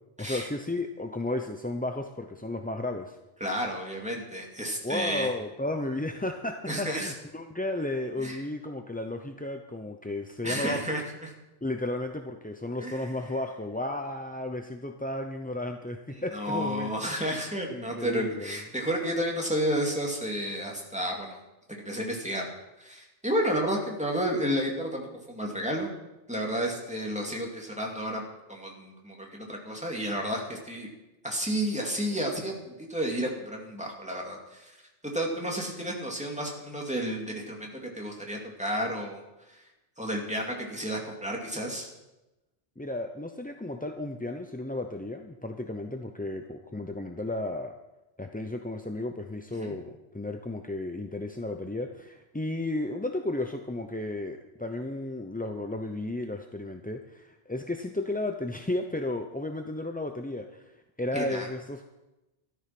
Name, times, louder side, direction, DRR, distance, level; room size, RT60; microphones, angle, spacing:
voice 1, 0.2-3.2 4.8-11.0 11.6-17.1 17.7-18.6 42.8-47.8 48.2-60.7 61.0-61.9, left 2 dB, 10° left, 4 dB, 0.6 m, -33 dB
voice 2, 3.4-5.3 6.7-7.1 8.2-8.4 10.4-11.3 12.8-13.1 16.1-21.4 21.8-22.4 22.8-25.9 26.3-28.2 28.5-30.9 31.2-34.7 35.0-39.2 39.5-39.6 40.0-41.9 49.5-49.7 61.1-61.5, equal, 5° right, -1 dB, 2.6 m, -31 dB
13.5 x 13.0 x 6.0 m, 1.0 s
omnidirectional pair, 1.1 m